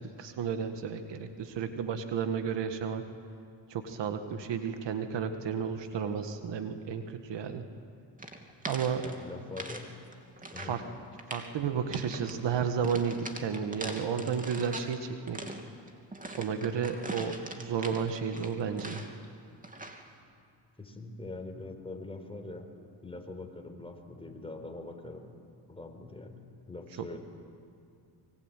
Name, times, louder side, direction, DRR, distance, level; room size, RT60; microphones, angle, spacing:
voice 1, 0.0-3.0 3.7-7.7 8.7-9.1 10.6-10.8 11.3-15.4 16.4-19.0 27.0-27.1, right 7 dB, 65° right, 7 dB, 1.9 m, -32 dB
sound 1, 8.2-9.8 10.1-10.8 11.1-11.5 11.9-12.4 12.8-15.0 15.3-19.3 19.6-20.1, right 2 dB, 15° right, 2.9 m, -42 dB
voice 2, 9.0-9.9 10.5-10.8 20.8-22.7 23.0-25.2 25.7-26.4 26.7-27.2, left 2 dB, 10° left, 4 dB, 4.6 m, -43 dB
24.0 x 23.5 x 9.2 m, 2.5 s
cardioid pair, 80°, 45 cm